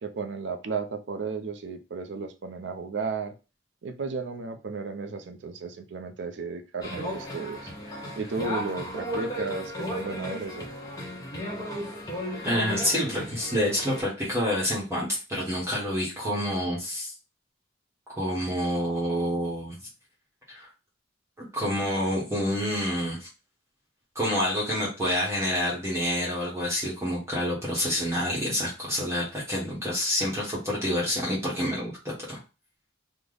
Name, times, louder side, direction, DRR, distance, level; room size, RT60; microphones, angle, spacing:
voice 1, 0.0-3.3 3.8-7.7 8.2-10.7, right 4 dB, 65° right, 8 dB, 0.5 m, -34 dB
sound 1, 6.8-14.0, equal, 20° left, 0.8 m, -35 dB
voice 2, 12.4-17.1 18.1-19.8 20.5-20.7 21.4-23.3 24.1-32.4, equal, 15° right, -5 dB, 0.9 m, -28 dB
3.3 x 2.1 x 3.8 m, 0.31 s
head